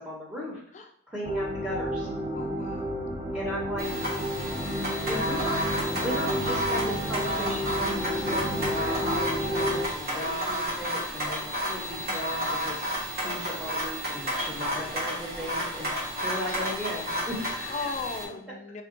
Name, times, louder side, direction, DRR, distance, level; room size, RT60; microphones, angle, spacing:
voice 1, 0.0-0.6 1.1-2.1 3.3-3.9 5.1-12.8 13.2-15.9 16.2-17.9, equal, 5° right, -6 dB, 0.9 m, -36 dB
sound 1, 1.2-9.9, equal, 30° right, 0.8 m, -31 dB
voice 2, 2.3-2.9 14.4-14.5 17.7-18.8, left 4 dB, 35° left, 4 dB, 0.4 m, -37 dB
sound 2, 3.8-18.2, equal, 50° right, 1.3 m, -31 dB
3.4 x 2.4 x 3.8 m, 0.63 s
head